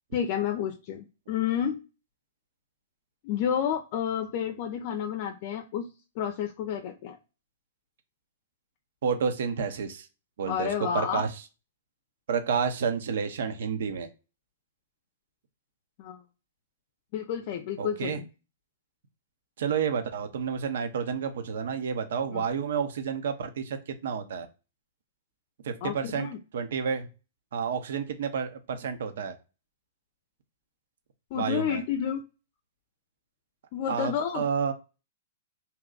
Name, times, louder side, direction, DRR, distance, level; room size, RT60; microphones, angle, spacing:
voice 1, 0.1-1.8 3.2-5.9 6.2-7.2 10.5-11.3 16.0-16.2 17.1-18.3 22.3-22.4 25.8-26.4 31.3-32.2 33.7-34.4, left 9 dB, 45° left, 6 dB, 0.6 m, -30 dB
voice 2, 9.0-10.1 10.4-11.3 12.3-14.1 17.8-18.2 19.6-24.5 25.6-26.3 26.5-27.1 27.5-29.3 31.3-31.8 33.9-34.7, right 6 dB, 65° right, 8 dB, 0.8 m, -30 dB
2.8 x 2.3 x 3.8 m, 0.31 s
hypercardioid pair, 110°, 0 cm